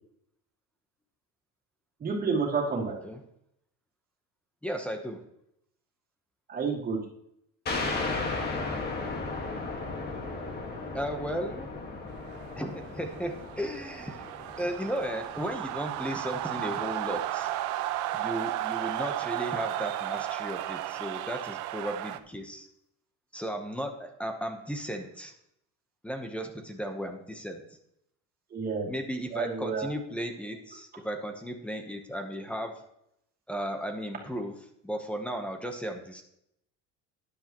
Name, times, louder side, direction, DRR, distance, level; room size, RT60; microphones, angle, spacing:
voice 1, 2.0-3.0 6.5-7.0 28.5-28.9 29.3-29.9, right 4 dB, 25° right, -2 dB, 2.6 m, -29 dB
voice 2, 4.6-5.2 10.9-11.7 12.6-14.3 14.6-17.5 18.1-22.7 23.3-25.3 26.0-27.6 28.9-32.7 33.5-34.6 34.8-36.2, equal, 5° left, 5 dB, 1.0 m, -35 dB
sound 1, 7.7-16.9, left 3 dB, 30° left, 1.7 m, -36 dB
sound 2, 12.3-22.2, right 14 dB, 65° right, 0.8 m, -34 dB
13.0 x 10.5 x 3.0 m, 0.77 s
cardioid pair, 165°, 33 cm